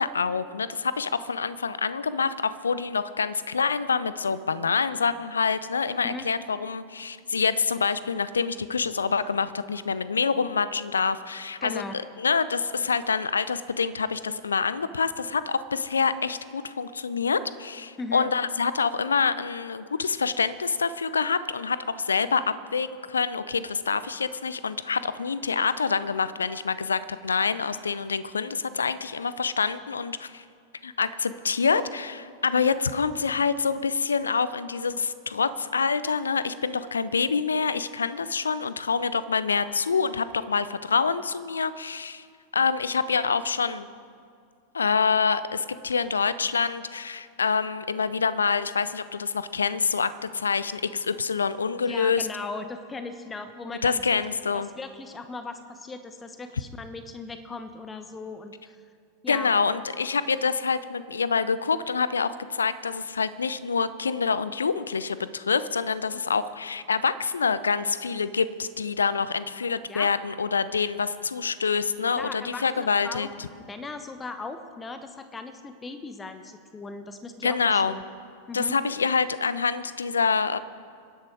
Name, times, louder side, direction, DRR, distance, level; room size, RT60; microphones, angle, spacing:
voice 1, 0.0-30.4 30.8-42.2 42.5-43.9 44.7-52.3 53.8-54.7 59.3-73.5 77.4-78.0 78.5-80.6, left 5 dB, 75° left, 15 dB, 0.6 m, -26 dB
voice 2, 11.6-12.0 18.0-18.3 51.8-54.2 54.5-58.8 59.2-59.5 66.1-66.2 69.9-70.1 72.2-73.4 73.7-78.0 78.5-78.8, left 3 dB, 15° left, 9 dB, 1.0 m, -38 dB
26.0 x 11.0 x 4.7 m, 2.3 s
figure-of-eight pair, 90°, 0 cm